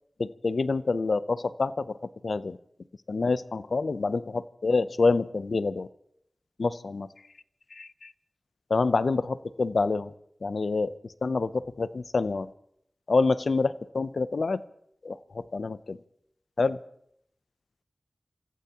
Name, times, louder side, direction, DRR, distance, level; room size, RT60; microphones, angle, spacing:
voice 1, 0.2-2.0 2.2-2.6 3.1-5.9 6.6-7.1 7.8-8.1 8.7-10.1 10.4-10.9 11.2-12.5 13.1-14.6 15.0-16.0 16.6-16.8, left 3 dB, 80° left, 15 dB, 0.6 m, -27 dB
28.5 x 15.5 x 2.9 m, 0.73 s
cardioid pair, 45°, 0 cm